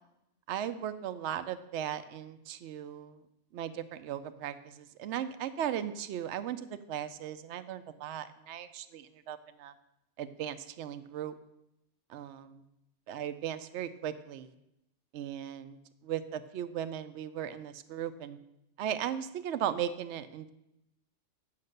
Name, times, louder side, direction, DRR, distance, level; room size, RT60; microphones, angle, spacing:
voice 1, 0.5-3.2 3.5-9.7 10.2-11.3 12.1-12.6 13.1-14.5 15.1-15.8 16.0-18.4 18.8-20.5, right 10 dB, 75° right, 11 dB, 0.9 m, -37 dB
8.5 x 6.6 x 6.6 m, 0.85 s
omnidirectional pair, 1.2 m